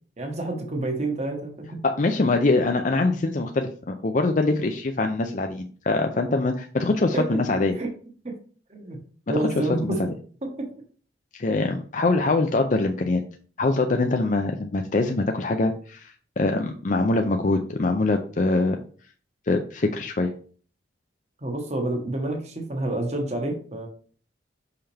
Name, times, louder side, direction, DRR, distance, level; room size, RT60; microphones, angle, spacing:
voice 1, 0.2-1.8 7.1-7.3 7.7-7.9 8.2-8.4 8.7-9.0 9.3-10.1 10.4-10.7 21.4-23.9, right 2 dB, 40° right, 3 dB, 1.3 m, -28 dB
voice 2, 1.8-7.8 9.6-10.0 11.3-13.2 13.6-18.8 19.5-20.3, left 2 dB, 45° left, 4 dB, 0.5 m, -23 dB
5.7 x 5.6 x 3.4 m, 0.42 s
head